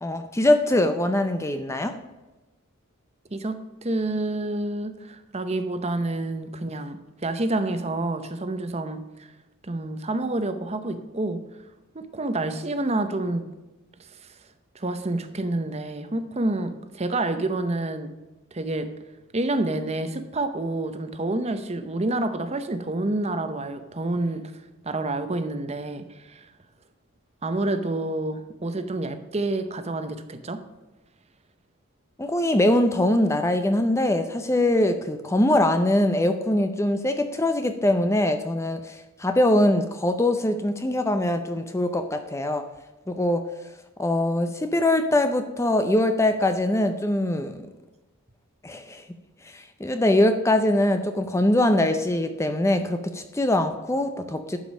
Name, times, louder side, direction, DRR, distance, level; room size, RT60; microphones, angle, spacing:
voice 1, 0.0-2.0 32.2-42.7 43.1-43.4 44.0-47.6 48.6-49.0 49.4-54.6, left 1 dB, 15° left, 8 dB, 0.5 m, -22 dB
voice 2, 3.3-9.3 9.6-11.4 11.9-13.5 14.7-18.1 18.5-18.9 19.3-24.4 24.8-26.5 27.4-30.6, right 2 dB, 30° right, 10 dB, 0.7 m, -28 dB
11.5 x 5.2 x 6.3 m, 1.1 s
head